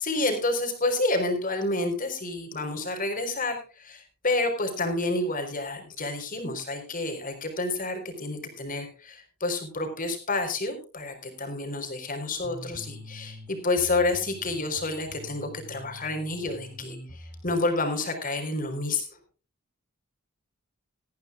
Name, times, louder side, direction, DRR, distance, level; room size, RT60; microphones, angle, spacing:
voice 1, 0.0-19.1, left 2 dB, 40° left, 4 dB, 4.1 m, -29 dB
sound 1, 12.2-13.5 13.8-17.5, equal, 10° right, 4.1 m, -45 dB
19.5 x 14.0 x 2.4 m, 0.35 s
head